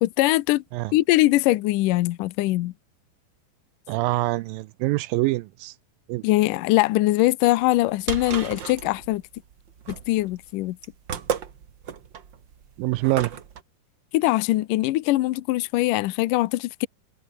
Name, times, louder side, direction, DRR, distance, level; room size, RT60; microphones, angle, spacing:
voice 1, 0.0-0.6 0.9-2.7 6.2-9.2 10.1-10.8 14.1-16.9, left 17 dB, 75° left, 2.1 m, -22 dB
voice 2, 3.9-5.7 6.1-6.2 12.8-13.3, right 19 dB, 80° right, 2.2 m, -25 dB
sound 1, 7.7-13.6, right 8 dB, 55° right, 1.3 m, -34 dB
omnidirectional pair, 4.4 m